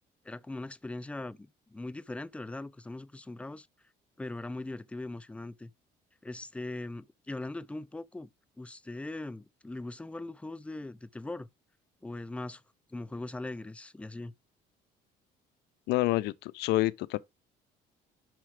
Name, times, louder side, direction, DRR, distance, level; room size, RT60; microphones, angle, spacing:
voice 1, 0.2-3.7 4.2-5.7 6.2-8.3 8.6-11.5 12.0-12.6 12.9-14.3, left 2 dB, 5° left, 0.4 m, -40 dB
voice 2, 15.9-17.2, left 17 dB, 80° left, 0.5 m, -28 dB
5.7 x 4.4 x 4.7 m
cardioid pair, 110°, 17 cm